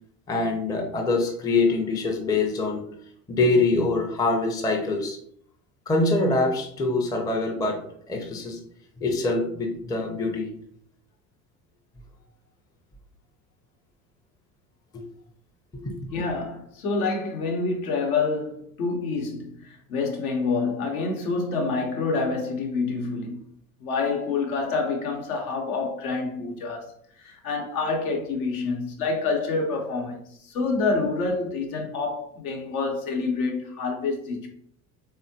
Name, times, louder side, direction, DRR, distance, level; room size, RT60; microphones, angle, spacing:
voice 1, 0.3-2.8 3.3-5.2 5.9-7.8 8.1-8.6 9.0-10.5 14.9-15.0 15.8-16.0, left 3 dB, 10° left, 0.4 m, -24 dB
voice 2, 16.1-23.4 23.8-34.5, left 4 dB, 70° left, 0.8 m, -27 dB
3.5 x 2.1 x 2.6 m
hypercardioid pair, 70°, 45 cm